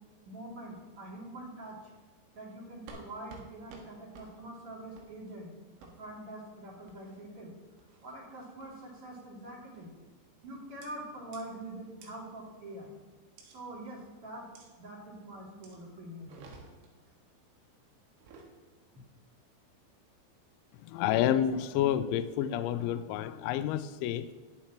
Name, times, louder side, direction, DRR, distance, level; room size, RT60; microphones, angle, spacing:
voice 1, 0.2-1.8 2.3-5.5 6.0-7.5 8.0-9.9 10.4-12.9 13.4-14.4 14.8-16.6, right 1 dB, 35° right, -4 dB, 2.8 m, -44 dB
sound 1, 2.9-3.0 3.3-3.5 3.7-3.9 4.1-4.3 5.0-5.1 5.8-5.9 6.9-7.2 7.8-8.1 8.6-8.9 9.7-10.0 10.8-10.9 11.3-11.4 12.0-12.1 13.4-13.6 14.6-14.7 15.6-15.8 16.2-16.9 18.1-18.5, right 4 dB, 85° right, 4.1 m, -52 dB
voice 2, 20.8-24.3, left 10 dB, 80° left, 12 dB, 2.8 m, -29 dB
20.0 x 7.7 x 3.0 m, 1.4 s
omnidirectional pair, 5.8 m